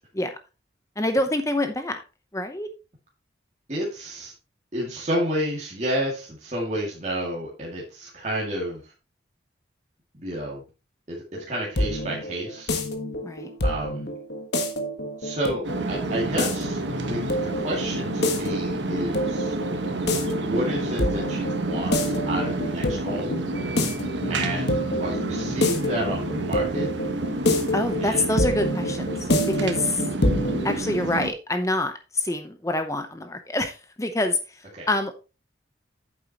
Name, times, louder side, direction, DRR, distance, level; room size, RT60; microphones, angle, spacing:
voice 1, 1.0-2.0 2.3-2.7 13.2-13.5 27.7-29.2 29.5-30.0 30.6-35.2, left 1 dB, 15° left, 8 dB, 0.7 m, -26 dB
voice 2, 3.7-4.3 4.7-8.9 10.1-10.6 11.1-12.8 13.6-14.1 15.2-16.8 17.1-19.5 20.4-23.5 24.3-26.9 27.9-28.2 34.7-34.9, right 1 dB, 35° right, -4 dB, 2.2 m, -30 dB
sound 1, 11.3-30.8, left 1 dB, 65° left, 1.4 m, -28 dB
sound 2, 15.6-31.3, right 2 dB, 75° right, 1.3 m, -30 dB
9.1 x 7.3 x 2.9 m, 0.30 s
head